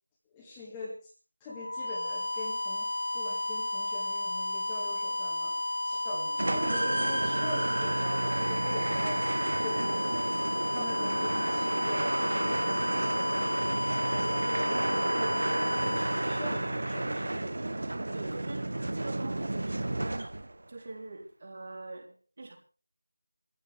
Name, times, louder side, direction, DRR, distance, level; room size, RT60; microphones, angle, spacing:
voice 1, 0.3-1.1 1.4-2.9 3.1-6.3 6.5-9.3 9.6-10.2 10.7-17.7, left 2 dB, 10° left, 1.8 m, -43 dB
sound 1, 1.5-17.3, left 1 dB, 55° left, 1.0 m, -33 dB
voice 2, 6.1-6.5 18.1-20.4 20.7-22.6, right 2 dB, 35° right, 3.6 m, -43 dB
sound 2, 6.4-20.6, right 2 dB, 55° right, 1.1 m, -31 dB
23.0 x 15.0 x 3.3 m
figure-of-eight pair, 170°, 0 cm